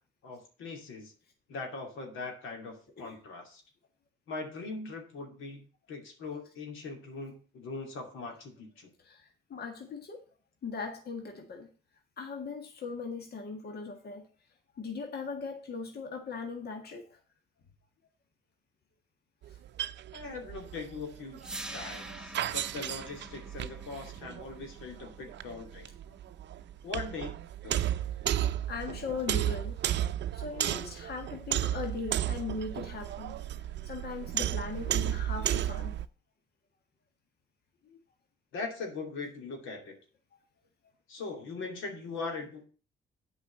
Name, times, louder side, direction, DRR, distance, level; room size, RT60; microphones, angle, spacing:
voice 1, 0.2-1.1 1.5-3.6 4.3-8.9 20.1-21.4 21.7-25.9 26.8-27.4 27.6-27.9 38.5-39.9 41.1-42.6, left 3 dB, 85° left, 3 dB, 2.8 m, -41 dB
voice 2, 9.0-10.2 10.6-11.7 12.2-14.3 14.7-17.2 28.7-29.8 30.3-35.9 37.8-38.0, left 4 dB, 55° left, 4 dB, 1.7 m, -39 dB
sound 1, 19.4-36.1, right 12 dB, 65° right, 0.5 m, -34 dB
sound 2, 21.4-27.4, right 1 dB, 5° right, 1.2 m, -47 dB
8.6 x 5.0 x 7.5 m, 0.39 s
cardioid pair, 90°, 20 cm